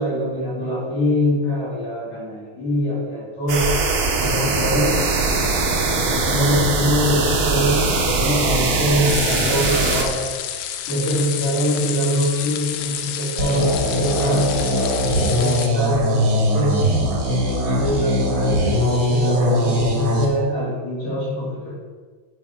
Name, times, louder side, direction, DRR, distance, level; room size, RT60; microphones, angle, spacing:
voice 1, 0.0-3.7 4.2-5.0 6.0-10.3 10.9-14.5 15.0-16.8 17.2-21.7, equal, 55° left, -9 dB, 4.4 m, -23 dB
sound 1, 3.5-10.0, right 3 dB, 65° right, 1.7 m, -21 dB
sound 2, 9.0-15.7, left 10 dB, 85° left, 2.5 m, -29 dB
sound 3, 13.4-20.3, equal, 85° right, 1.0 m, -20 dB
11.5 x 4.7 x 4.6 m, 1.5 s
omnidirectional pair, 4.7 m